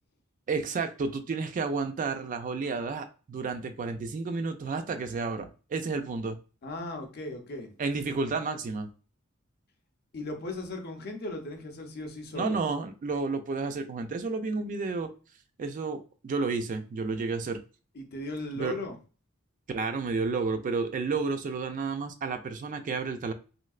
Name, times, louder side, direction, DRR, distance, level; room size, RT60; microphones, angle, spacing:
voice 1, 0.5-6.4 7.8-8.9 12.4-15.1 15.6-17.6 18.6-18.7 19.7-23.3, right 4 dB, 40° right, 8 dB, 0.3 m, -31 dB
voice 2, 6.6-7.7 10.1-12.6 17.9-19.0, left 2 dB, 50° left, 4 dB, 0.6 m, -37 dB
3.1 x 2.7 x 2.3 m, 0.35 s
head